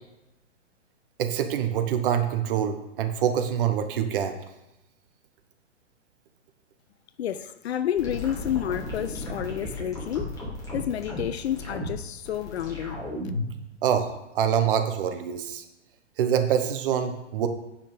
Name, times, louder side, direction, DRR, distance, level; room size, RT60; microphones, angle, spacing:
voice 1, 1.2-4.4 13.8-15.6 16.2-17.5, right 9 dB, 45° right, 1.2 m, -25 dB
voice 2, 7.2-10.4 10.7-13.0, left 10 dB, 60° left, 0.7 m, -30 dB
sound 1, 8.0-13.6, left 1 dB, 10° left, 2.7 m, -34 dB
9.1 x 5.8 x 5.2 m
hypercardioid pair, 130°, 36 cm